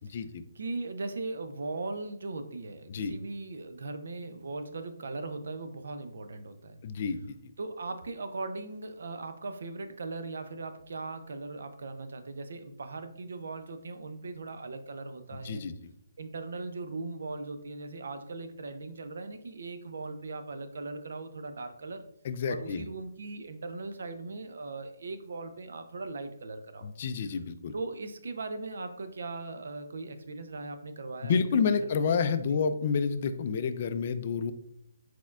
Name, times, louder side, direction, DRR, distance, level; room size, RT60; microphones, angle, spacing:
voice 1, 0.6-6.8 7.6-15.6 16.2-22.0 22.5-26.9 27.7-31.7 32.1-32.2 32.5-32.6, right 3 dB, 70° right, 9 dB, 0.5 m, -39 dB
voice 2, 6.8-7.5 15.3-15.9 22.2-22.9 26.8-27.7 31.2-34.5, left 6 dB, 40° left, 10 dB, 0.3 m, -29 dB
4.4 x 4.2 x 2.4 m, 0.75 s
hypercardioid pair, 160°, 0 cm